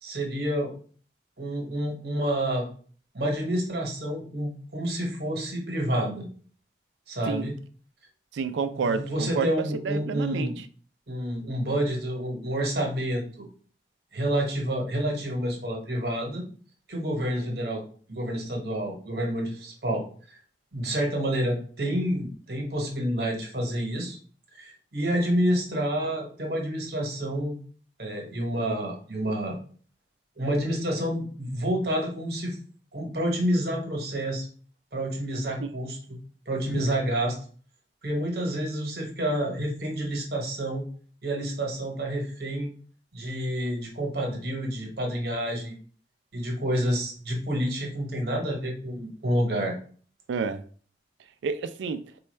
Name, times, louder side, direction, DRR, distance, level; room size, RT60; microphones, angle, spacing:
voice 1, 0.0-0.7 1.4-2.7 3.1-6.3 7.1-7.5 8.7-10.6 11.1-13.5 14.1-16.4 16.9-17.8 18.1-20.4 20.7-24.2 24.5-27.6 28.0-29.6 30.4-32.6 32.9-34.5 34.9-36.2 36.5-37.4 38.0-40.8 41.2-42.7 43.1-45.8 46.3-49.8, right 1 dB, 60° right, 1.0 m, -29 dB
voice 2, 8.3-9.5 9.8-10.5 50.3-50.6 51.4-52.0, right 5 dB, 90° right, 0.3 m, -29 dB
4.1 x 2.3 x 3.1 m
head